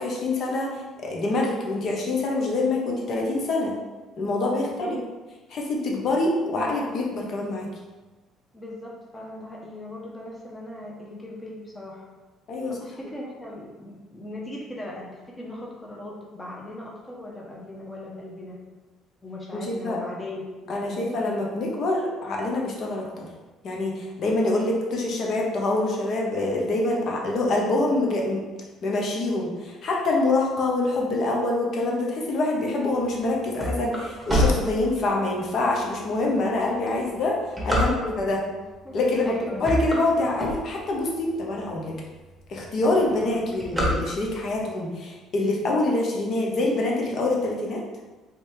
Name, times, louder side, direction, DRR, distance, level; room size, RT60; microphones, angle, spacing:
voice 1, 0.0-3.8 4.2-5.0 5.5-7.7 12.5-12.7 19.5-20.0 20.7-23.3 23.6-28.4 28.8-37.4 37.6-38.4 38.9-42.0 42.5-47.8, left 2 dB, 55° left, -1 dB, 0.9 m, -25 dB
voice 2, 4.5-4.9 8.5-12.1 12.7-18.6 19.2-21.1 37.7-38.3 38.8-39.0 39.2-39.6, left 1 dB, 15° left, -3 dB, 0.9 m, -39 dB
sound 1, 33.1-35.4 35.9-36.0 36.7-38.4 39.0-39.3 39.6-41.1 41.6-41.7 41.9-42.0 42.3-42.7 42.9-44.6, left 1 dB, 5° right, 1.2 m, -26 dB
3.4 x 2.7 x 3.3 m, 1.2 s
supercardioid pair, 75°, 0 cm